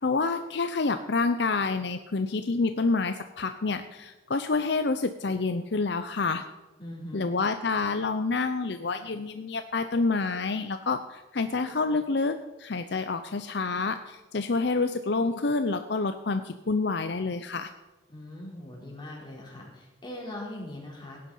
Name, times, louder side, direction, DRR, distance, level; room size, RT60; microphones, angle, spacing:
voice 1, 0.0-6.4 7.1-17.7, left 3 dB, 60° left, 9 dB, 0.7 m, -28 dB
voice 2, 6.8-7.3 18.1-21.2, left 1 dB, 25° left, -3 dB, 4.2 m, -41 dB
17.0 x 10.5 x 5.6 m, 1.1 s
head